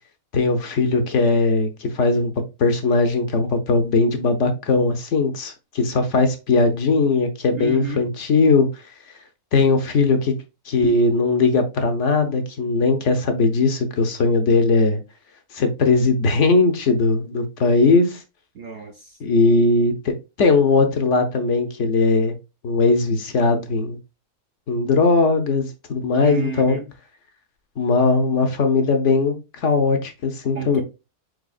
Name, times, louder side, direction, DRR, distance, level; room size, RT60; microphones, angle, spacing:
voice 1, 0.3-2.3 2.6-8.8 9.5-10.3 10.7-15.0 15.5-18.2 19.2-22.4 22.6-24.0 24.7-26.8 27.8-30.8, left 3 dB, 60° left, 1.1 m, -19 dB
voice 2, 7.5-8.0 18.5-19.2 26.2-26.9 30.5-30.8, right 5 dB, 55° right, 0.7 m, -30 dB
4.8 x 4.5 x 2.4 m
omnidirectional pair, 1.5 m